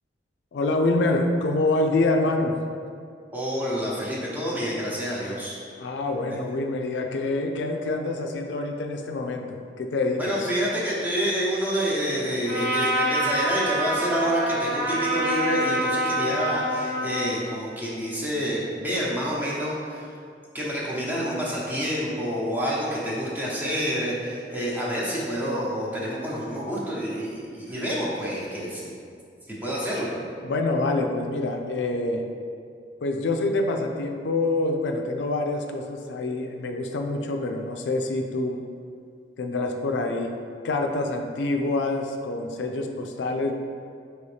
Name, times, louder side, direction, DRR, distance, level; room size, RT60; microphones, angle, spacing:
voice 1, 0.5-2.6 5.8-10.5 30.4-32.2 33.0-38.6 39.4-40.4 40.6-43.5, left 2 dB, 85° left, 4 dB, 0.4 m, -26 dB
voice 2, 3.3-5.6 10.2-20.1 20.5-29.0 29.5-30.1, equal, 10° right, -6 dB, 0.9 m, -28 dB
Trumpet, 12.4-17.4, equal, 65° right, 1.3 m, -26 dB
5.4 x 3.0 x 3.2 m, 2.3 s
head